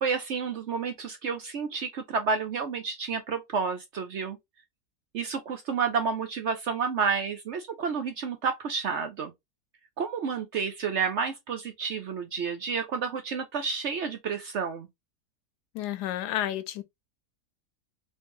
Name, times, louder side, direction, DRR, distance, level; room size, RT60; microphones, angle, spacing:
voice 1, 0.0-4.4 5.1-9.3 10.0-14.9, right 5 dB, 65° right, 0.7 m, -30 dB
voice 2, 15.7-16.8, left 12 dB, 85° left, 1.2 m, -31 dB
3.2 x 3.1 x 2.8 m
omnidirectional pair, 1.7 m